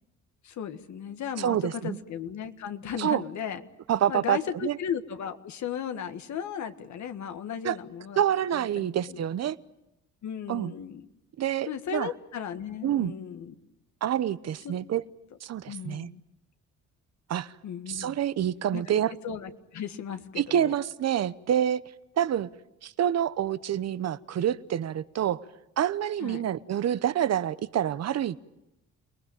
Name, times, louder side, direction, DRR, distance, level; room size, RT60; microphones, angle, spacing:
voice 1, 0.4-3.6 4.1-8.2 8.8-9.2 10.2-11.1 11.7-13.6 14.6-14.7 15.7-16.2 17.6-18.2 18.7-20.7 26.2-26.4, left 8 dB, 70° left, 8 dB, 1.7 m, -36 dB
voice 2, 1.4-2.0 3.0-3.2 3.9-4.8 7.6-7.8 8.2-9.6 10.5-10.7 11.4-12.1 12.8-13.1 14.0-15.0 15.4-16.1 17.3-17.5 17.9-19.1 20.4-21.8 22.2-22.5 22.8-25.4 25.8-28.4, right 10 dB, 60° right, 16 dB, 0.9 m, -27 dB
29.0 x 19.5 x 9.0 m, 0.92 s
cardioid pair, 90°, 30 cm